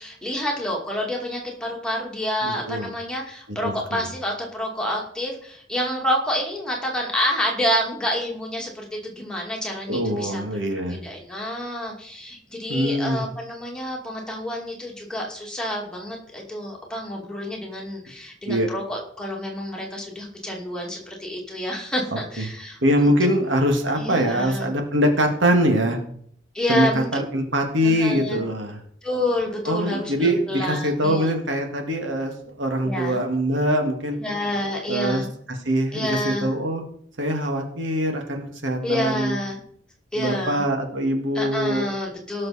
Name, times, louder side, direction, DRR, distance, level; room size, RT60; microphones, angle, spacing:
voice 1, 0.0-10.4 10.9-23.4 23.9-24.7 26.5-27.1 27.8-28.4 29.0-31.3 32.8-33.2 34.2-35.3 35.9-36.5 38.8-39.6 40.1-40.6 41.3-42.5, left 1 dB, 5° left, -2 dB, 2.5 m, -28 dB
voice 2, 2.4-2.9 3.6-4.1 9.9-11.0 12.7-13.2 18.5-18.7 22.4-22.5 22.8-26.0 26.7-26.9 27.1-28.8 29.7-34.2 34.9-36.8 37.2-39.4 40.2-41.9, equal, 85° right, 4 dB, 2.2 m, -23 dB
18.0 x 6.5 x 4.4 m, 0.63 s
head